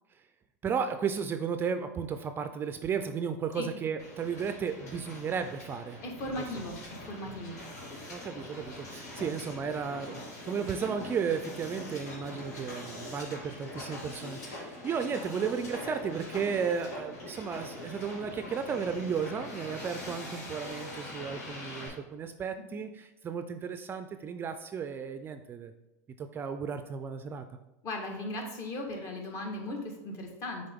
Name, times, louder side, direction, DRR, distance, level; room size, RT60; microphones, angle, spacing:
voice 1, 0.6-6.0 6.4-6.7 8.1-25.7 26.2-27.4, right 6 dB, 25° right, 8 dB, 0.4 m, -34 dB
Hiss, 4.0-21.9, left 1 dB, 85° left, 2.2 m, -43 dB
voice 2, 6.0-7.6 27.8-30.7, left 1 dB, 40° left, 2 dB, 1.5 m, -37 dB
6.6 x 4.0 x 3.6 m, 1.0 s
supercardioid pair, 120°, 8 cm